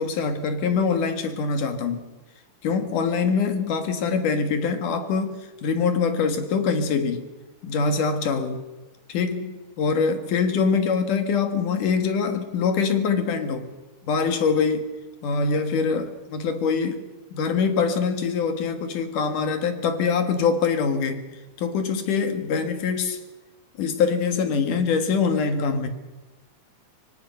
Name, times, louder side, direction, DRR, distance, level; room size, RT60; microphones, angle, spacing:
voice 1, 0.0-2.1 2.6-7.2 7.6-8.6 9.1-13.8 14.0-14.9 15.2-17.1 17.3-21.3 21.6-23.2 23.8-25.9, left 5 dB, 80° left, 3.5 m, -24 dB
25.5 x 23.0 x 5.7 m
omnidirectional pair, 3.6 m